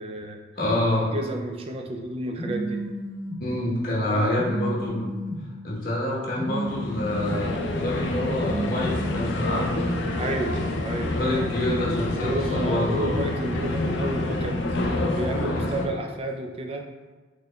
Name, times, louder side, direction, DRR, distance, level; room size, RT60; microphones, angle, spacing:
voice 1, 0.0-0.4 1.1-2.8 4.1-4.7 10.2-11.5 11.8-16.9, right 1 dB, 30° right, 3 dB, 0.3 m, -31 dB
voice 2, 0.6-1.1 3.4-5.1 5.6-9.9 11.1-13.3 15.1-15.2 15.5-15.6, left 1 dB, 50° left, -5 dB, 0.9 m, -27 dB
Telephone, 2.3-3.4 4.3-5.4 6.3-7.4 8.3-9.4, equal, 30° left, 1.2 m, -32 dB
sound 1, 6.6-15.9, left 2 dB, 80° left, 0.4 m, -28 dB
4.0 x 3.1 x 2.2 m, 1.3 s
head